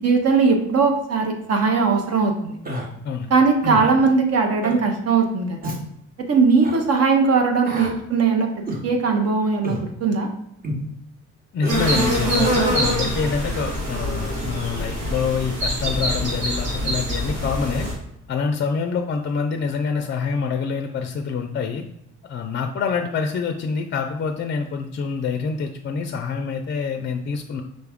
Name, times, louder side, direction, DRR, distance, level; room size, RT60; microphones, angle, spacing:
voice 1, 0.0-2.6 3.3-5.8 6.3-8.5 8.8-10.3, right 4 dB, 55° right, 4 dB, 0.7 m, -19 dB
Human voice, 2.6-2.9 3.6-3.9 4.6-4.8 5.6-5.8 6.6-6.8 7.6-8.0 8.7-8.9 9.6-9.9 10.6-10.8 11.6-11.8, equal, 30° right, 0.9 m, -29 dB
voice 2, 11.5-17.9 18.3-21.8 22.3-27.6, left 5 dB, 40° left, 5 dB, 0.4 m, -26 dB
sound 1, 11.7-17.9, equal, 85° right, 1.5 m, -24 dB
5.1 x 2.3 x 3.5 m, 0.77 s
cardioid pair, 90°, 30 cm